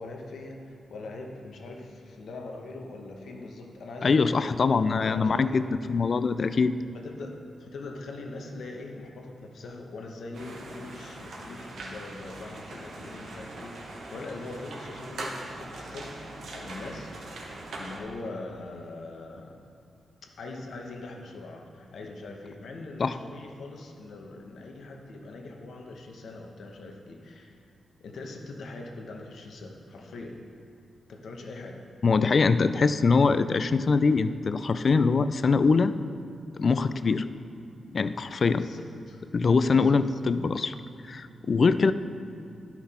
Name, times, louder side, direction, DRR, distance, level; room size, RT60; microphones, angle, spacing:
voice 1, 0.0-5.6 6.9-16.2 16.5-19.7 20.4-27.6 28.0-30.4 31.1-31.8 38.5-39.2 39.7-39.9, left 2 dB, 75° left, 2 dB, 1.0 m, -42 dB
voice 2, 4.0-6.8 23.0-23.2 32.0-35.9 36.5-37.3 37.9-38.7 39.3-40.8 41.1-41.9, left 4 dB, 45° left, 13 dB, 0.3 m, -23 dB
sound 1, 10.3-18.0, right 2 dB, 80° right, 1.3 m, -41 dB
11.5 x 5.8 x 4.3 m, 2.5 s
wide cardioid pair, 115°, 0 cm